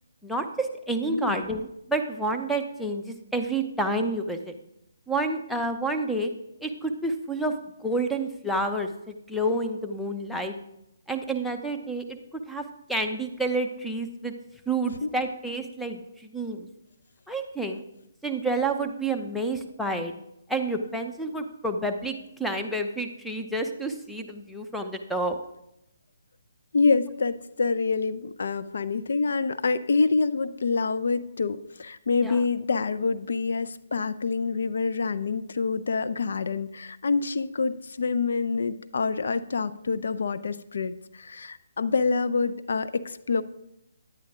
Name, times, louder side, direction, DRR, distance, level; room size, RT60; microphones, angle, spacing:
voice 1, 0.2-4.5 5.1-6.3 6.6-7.5 7.8-10.6 11.1-12.2 12.5-12.6 12.9-14.3 14.7-16.7 17.3-17.8 18.2-20.1 20.5-25.4 32.2-32.4, right 2 dB, ahead, 4 dB, 0.8 m, -29 dB
voice 2, 1.1-1.4 15.0-15.1 26.7-43.4, left 4 dB, 65° left, 13 dB, 0.5 m, -26 dB
10.5 x 9.5 x 3.7 m, 0.82 s
figure-of-eight pair, 145°, 0 cm